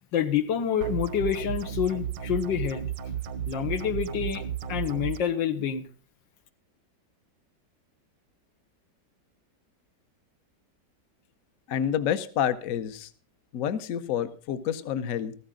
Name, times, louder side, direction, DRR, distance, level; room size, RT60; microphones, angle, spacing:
voice 1, 0.1-2.8 3.5-4.4 4.7-5.8, left 9 dB, 85° left, 9 dB, 1.7 m, -27 dB
sound 1, 0.8-5.2, right 9 dB, 85° right, 1.5 m, -33 dB
voice 2, 11.7-13.1 13.5-15.3, left 9 dB, 60° left, 12 dB, 1.1 m, -28 dB
14.0 x 14.0 x 3.8 m, 0.40 s
omnidirectional pair, 1.9 m